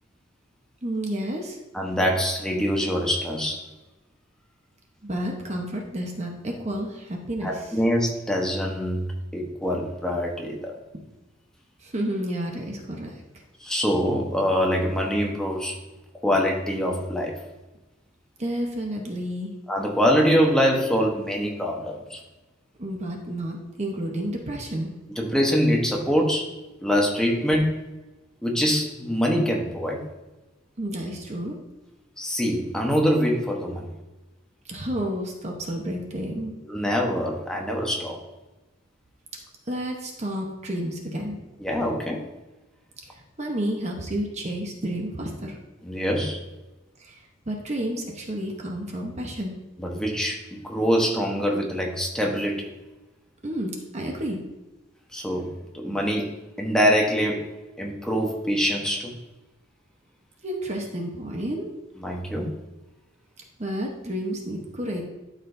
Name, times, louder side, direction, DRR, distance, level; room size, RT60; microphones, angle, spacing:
voice 1, 0.8-1.6 5.0-7.5 11.8-13.1 18.4-19.5 22.8-24.9 30.8-31.5 34.6-36.5 39.7-41.4 43.1-45.6 47.0-49.6 53.4-54.4 60.4-61.7 63.6-65.0, right 1 dB, 35° right, 1 dB, 1.0 m, -30 dB
voice 2, 1.7-3.6 7.4-9.1 9.3-10.7 13.6-15.8 16.2-17.4 19.7-22.2 25.1-27.8 28.4-30.0 32.2-33.9 36.6-38.2 41.6-42.2 45.8-46.4 49.8-52.7 55.1-55.5 55.7-57.5 57.8-59.2 62.0-62.5, equal, 5° left, -1 dB, 1.0 m, -24 dB
12.0 x 5.0 x 2.7 m, 1.1 s
head